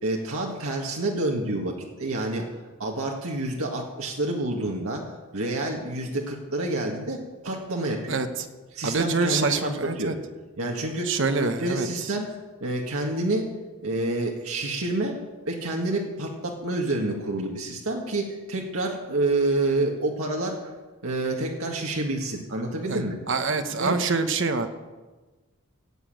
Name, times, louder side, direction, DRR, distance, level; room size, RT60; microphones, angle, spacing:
voice 1, 0.0-8.2 8.7-10.2 10.6-13.5 13.8-15.2 15.5-20.7 21.0-23.2 23.8-24.0, right 2 dB, 75° right, 0 dB, 1.8 m, -28 dB
voice 2, 8.8-10.1 11.1-11.9 22.9-23.0 23.3-24.7, right 4 dB, 55° right, 8 dB, 1.0 m, -25 dB
15.5 x 8.3 x 9.0 m, 1.3 s
head